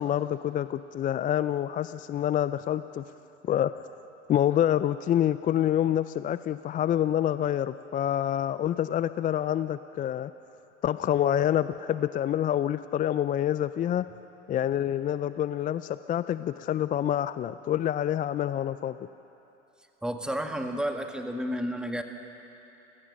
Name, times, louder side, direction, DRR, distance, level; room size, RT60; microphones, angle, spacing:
voice 1, 0.0-3.0 3.4-3.7 4.3-10.3 10.8-14.1 14.5-19.0, left 11 dB, 25° left, 14 dB, 0.4 m, -27 dB
voice 2, 20.0-22.0, equal, ahead, 4 dB, 1.7 m, -31 dB
29.0 x 17.0 x 6.4 m, 2.9 s
hypercardioid pair, 90°, 38 cm